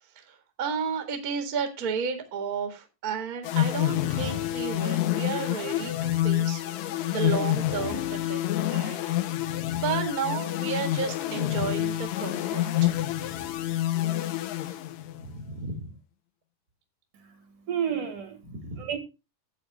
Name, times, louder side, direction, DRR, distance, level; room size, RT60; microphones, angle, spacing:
voice 1, 0.1-8.4 8.7-9.2 9.8-13.1 15.2-16.0 18.5-18.9, right 6 dB, 35° right, 1.7 m, -33 dB
sound 1, 3.4-15.3, left 13 dB, 75° left, 1.8 m, -28 dB
voice 2, 17.1-19.0, right 8 dB, 65° right, 3.1 m, -32 dB
11.0 x 8.4 x 3.3 m
omnidirectional pair, 3.8 m